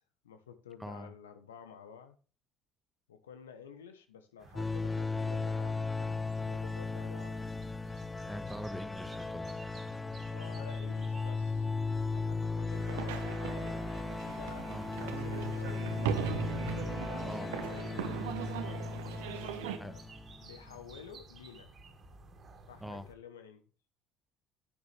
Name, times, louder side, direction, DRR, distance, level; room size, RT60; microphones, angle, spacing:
voice 1, 0.2-2.2 3.1-7.5 10.3-13.8 14.2-16.3 16.9-18.3 19.1-20.1 20.4-21.7 22.7-23.6, left 7 dB, 85° left, 9 dB, 1.0 m, -51 dB
voice 2, 0.8-1.1 8.2-9.5 14.7-14.9 17.2-17.5 19.8-20.0 22.8-23.1, equal, ahead, 10 dB, 1.3 m, -43 dB
sound 1, 4.4-23.1, right 3 dB, 45° right, 2.2 m, -55 dB
sound 2, 4.6-20.5, left 4 dB, 15° left, 0.7 m, -36 dB
sound 3, 12.7-19.8, right 9 dB, 75° right, 1.0 m, -39 dB
10.5 x 9.3 x 3.4 m, 0.36 s
hypercardioid pair, 60°, 0 cm